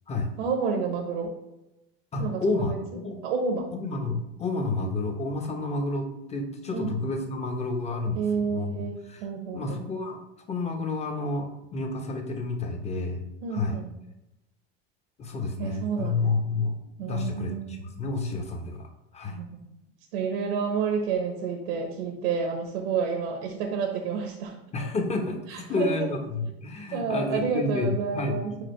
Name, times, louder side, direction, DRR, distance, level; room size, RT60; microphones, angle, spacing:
voice 1, 0.4-1.3 2.2-2.8 3.2-3.6 6.7-7.0 8.1-9.8 13.4-13.9 15.6-16.3 17.0-17.8 19.2-19.6 20.1-24.6 25.5-25.9 26.9-28.6, right 5 dB, 85° right, 2 dB, 1.2 m, -29 dB
voice 2, 2.1-2.7 3.0-3.2 3.7-9.2 9.5-13.2 13.5-13.8 15.2-19.4 24.7-28.6, left 3 dB, 20° left, 3 dB, 1.0 m, -30 dB
5.0 x 4.5 x 4.4 m, 0.94 s
supercardioid pair, 130°, 29 cm